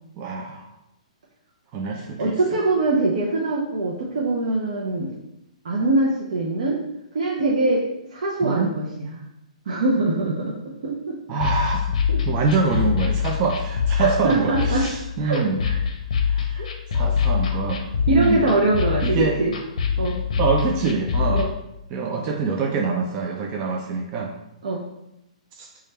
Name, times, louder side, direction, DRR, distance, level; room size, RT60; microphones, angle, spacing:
voice 1, 0.2-0.7 1.7-2.6 8.4-8.7 11.3-12.0 12.3-15.6 16.2-16.6 16.9-18.4 19.0-19.4 20.4-21.4 21.9-24.3 25.6-25.7, right 4 dB, 30° right, 1 dB, 0.3 m, -25 dB
voice 2, 2.2-5.1 5.6-6.8 7.1-9.2 9.7-11.2 12.1-12.2 14.0-14.9 15.2-15.8 16.5-16.7 18.1-19.5 20.0-20.2 21.3-21.5 24.6-24.8, right 2 dB, 65° right, -3 dB, 0.6 m, -23 dB
sound 1, 11.4-21.4, left 7 dB, 65° left, 0.6 m, -24 dB
3.3 x 2.4 x 4.1 m, 0.86 s
hypercardioid pair, 145°, 4 cm